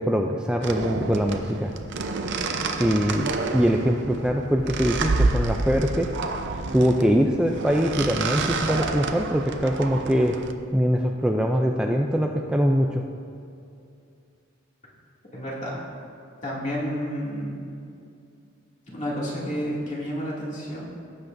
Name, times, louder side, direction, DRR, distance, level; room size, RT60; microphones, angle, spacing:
voice 1, 0.0-1.7 2.8-6.1 6.7-10.3 10.7-13.0, equal, 5° right, 1 dB, 0.4 m, -23 dB
sound 1, 0.6-10.5, right 3 dB, 60° right, 0.6 m, -29 dB
voice 2, 2.6-2.9 15.3-15.8 16.4-17.5 18.9-20.9, equal, 35° left, -6 dB, 2.4 m, -30 dB
18.0 x 8.1 x 2.6 m, 2.5 s
head